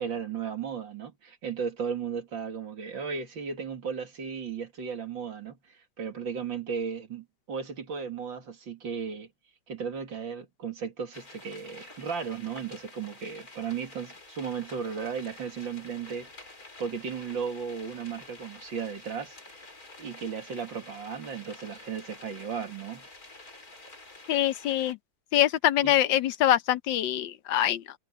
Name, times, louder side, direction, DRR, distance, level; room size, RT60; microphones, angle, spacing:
voice 1, 0.0-9.3 9.7-16.5 16.8-19.6 20.0-23.0 25.8-25.9, right 6 dB, 65° right, 3.1 m, -35 dB
sound 1, 11.1-24.9, left 2 dB, 45° left, 4.9 m, -49 dB
voice 2, 24.3-25.0 25.3-27.9, left 12 dB, 70° left, 1.4 m, -24 dB
omnidirectional pair, 2.2 m